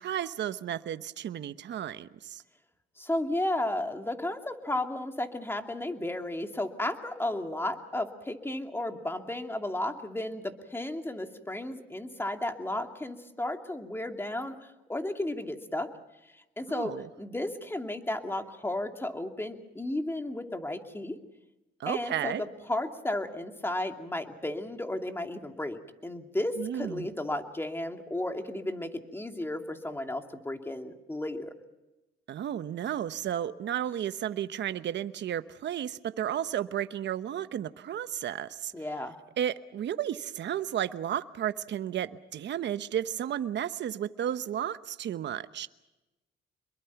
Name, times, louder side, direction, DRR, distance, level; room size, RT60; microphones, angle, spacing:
voice 1, 0.0-2.4 16.7-17.1 21.8-22.4 26.6-27.1 32.3-38.7 39.4-45.7, right 10 dB, 65° right, 12 dB, 1.0 m, -33 dB
voice 2, 3.0-15.9 16.6-21.2 21.9-31.5 38.7-39.2, left 1 dB, 10° left, 5 dB, 2.6 m, -33 dB
26.5 x 22.5 x 5.9 m, 1.0 s
cardioid pair, 90°, 20 cm